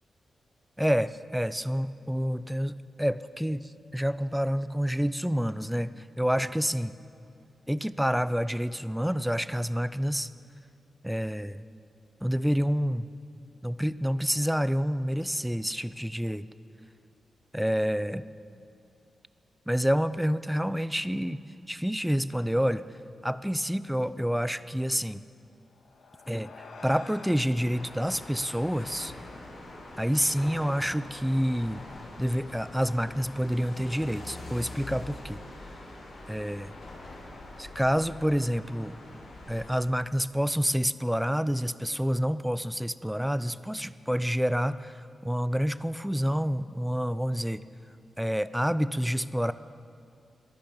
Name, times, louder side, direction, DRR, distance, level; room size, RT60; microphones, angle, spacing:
voice 1, 0.8-6.9 7.7-10.3 11.0-11.6 12.2-13.1 13.6-16.5 17.5-18.2 19.7-21.4 21.7-22.8 23.2-25.2 26.3-29.1 30.0-31.8 32.2-35.4 36.3-36.7 37.6-38.9 39.5-47.6 48.2-49.5, equal, ahead, 15 dB, 0.3 m, -28 dB
sound 1, 25.6-30.3, left 3 dB, 85° left, 2.0 m, -49 dB
sound 2, 27.6-39.7, left 2 dB, 65° left, 3.7 m, -44 dB
22.5 x 11.5 x 5.3 m, 2.5 s
wide cardioid pair, 170°, 0 cm